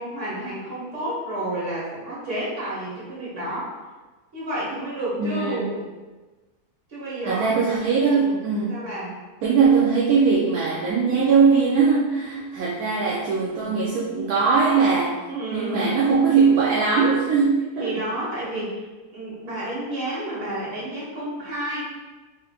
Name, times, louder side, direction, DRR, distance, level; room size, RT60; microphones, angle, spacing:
voice 1, 0.0-3.7 4.3-5.9 6.9-7.5 8.1-8.4 8.7-9.1 15.3-15.9 17.8-18.8 19.1-22.0, right 1 dB, 55° right, -7 dB, 1.6 m, -30 dB
voice 2, 5.2-5.6 7.2-8.9 9.4-15.1 15.5-17.9, right 5 dB, 80° right, -5 dB, 1.1 m, -20 dB
4.3 x 3.0 x 2.3 m, 1.2 s
omnidirectional pair, 1.6 m